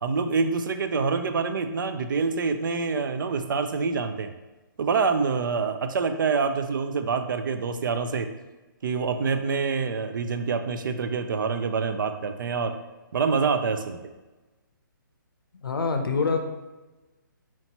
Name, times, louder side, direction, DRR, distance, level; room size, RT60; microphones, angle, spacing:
voice 1, 0.0-4.3 4.8-8.3 8.8-12.7 13.1-14.0, right 5 dB, 65° right, 8 dB, 0.4 m, -26 dB
voice 2, 15.6-16.4, left 4 dB, 90° left, 6 dB, 0.6 m, -25 dB
4.4 x 2.8 x 2.9 m, 1.1 s
hypercardioid pair, 150°, 11 cm